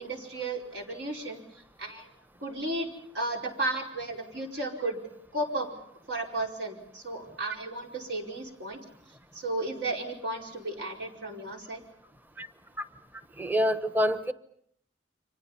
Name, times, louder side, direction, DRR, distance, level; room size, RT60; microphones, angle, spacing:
voice 1, 0.0-1.4 1.8-2.1 2.4-2.9 3.1-5.0 5.3-5.7 6.1-8.8 9.3-11.8, right 2 dB, 70° right, 1 dB, 4.9 m, -34 dB
voice 2, 13.4-14.3, equal, 10° right, 11 dB, 1.0 m, -26 dB
30.0 x 25.0 x 5.7 m, 0.67 s
head